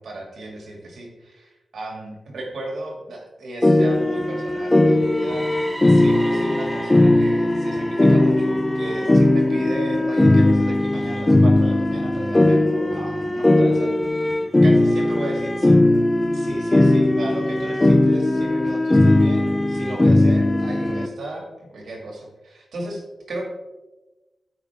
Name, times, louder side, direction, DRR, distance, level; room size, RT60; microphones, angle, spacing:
voice 1, 0.0-5.6 5.9-8.5 8.7-15.7 16.3-23.5, right 2 dB, 90° right, 0 dB, 2.3 m, -35 dB
sound 1, 3.6-21.1, left 1 dB, 20° left, 0.5 m, -18 dB
sound 2, 4.8-12.8, right 1 dB, 10° right, 1.2 m, -39 dB
13.5 x 5.4 x 3.6 m, 1.1 s
wide cardioid pair, 135°, 0 cm